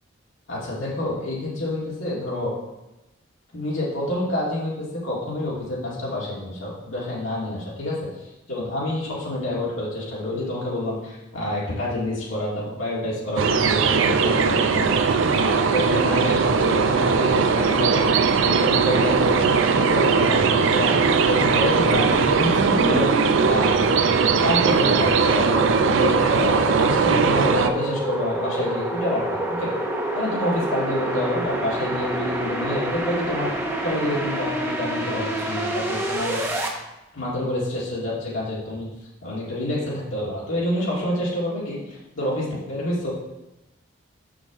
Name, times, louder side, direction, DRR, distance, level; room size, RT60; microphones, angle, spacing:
voice 1, 0.5-2.5 3.5-8.0 8.5-14.9 15.3-18.1 18.4-20.9 21.3-23.1 23.4-23.8 24.4-25.5 25.9-29.7 30.1-33.5 33.8-36.4 37.1-38.9 39.2-43.1, left 1 dB, 80° left, -7 dB, 1.9 m, -27 dB
sound 1, 13.4-27.7, right 5 dB, 75° right, 0.5 m, -19 dB
sound 2, 21.9-36.7, right 1 dB, 10° right, 0.7 m, -28 dB
6.2 x 6.1 x 3.6 m, 0.97 s
head